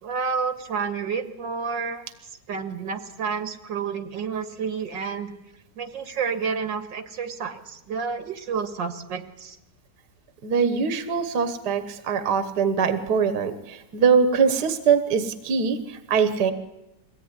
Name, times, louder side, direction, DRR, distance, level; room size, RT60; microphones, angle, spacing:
voice 1, 0.0-2.1 2.5-5.3 5.8-9.6, right 5 dB, 85° right, 8 dB, 2.4 m, -30 dB
voice 2, 10.4-15.8 16.1-16.5, right 6 dB, 65° right, 10 dB, 1.8 m, -22 dB
22.5 x 17.0 x 9.8 m, 0.94 s
omnidirectional pair, 1.9 m